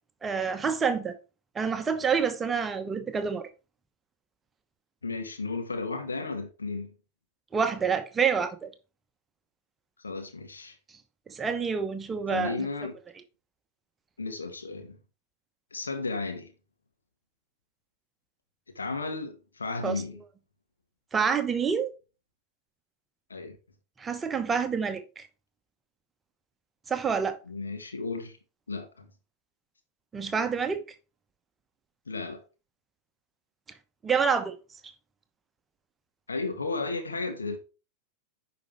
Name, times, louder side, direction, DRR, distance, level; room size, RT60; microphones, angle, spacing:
voice 1, 0.2-1.1 1.5-3.5 7.5-8.7 11.3-12.7 19.8-19.9 21.1-21.9 24.0-25.3 26.9-27.4 30.1-30.8 34.0-34.5, right 6 dB, 15° right, 1.0 m, -27 dB
voice 2, 5.0-6.9 10.0-10.8 12.3-13.0 14.2-15.0 15.7-16.5 18.8-20.2 23.3-23.6 27.5-28.4 28.7-29.1 32.1-32.4 36.3-37.6, left 3 dB, 75° left, 1.6 m, -34 dB
10.5 x 5.2 x 3.4 m
figure-of-eight pair, 90°, 0 cm